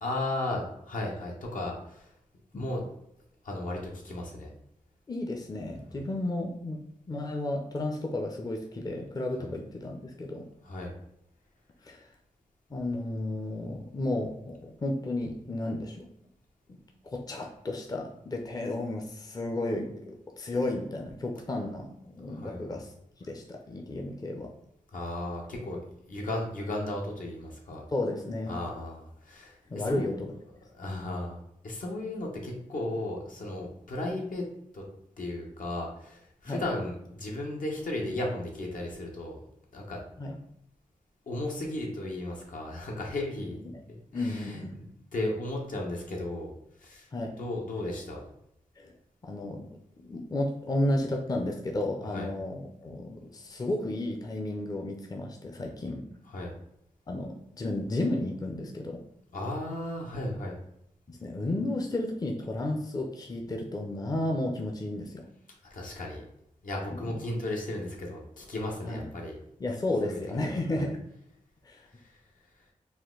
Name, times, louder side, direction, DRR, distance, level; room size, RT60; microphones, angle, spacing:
voice 1, 0.0-2.1 2.5-2.8 3.4-3.8 4.0-4.5 5.9-6.0 9.4-9.5 10.6-10.9 22.2-22.6 24.9-25.8 26.1-27.8 28.5-30.2 30.7-34.4 34.7-34.8 35.2-39.4 39.7-40.0 41.3-43.6 43.9-46.5 46.8-47.1 47.4-48.2 52.1-52.3 56.3-56.5 59.3-60.5 65.7-66.2 66.6-69.3 70.0-70.5 70.8-70.9, left 1 dB, 75° left, -1 dB, 1.1 m, -35 dB
voice 2, 5.1-6.8 7.1-10.5 11.8-12.1 12.7-16.1 16.7-16.8 17.0-22.9 23.2-24.5 27.9-28.5 29.7-30.3 36.5-36.6 40.2-40.4 43.7-43.8 44.1-44.8 47.1-47.3 48.8-48.9 49.2-49.7 50.0-56.1 57.1-59.0 61.1-65.2 67.0-67.1 68.8-69.0 69.6-71.0 71.6-71.9, left 1 dB, 25° left, 2 dB, 0.5 m, -33 dB
4.3 x 2.5 x 3.7 m, 0.74 s
wide cardioid pair, 105°, 14 cm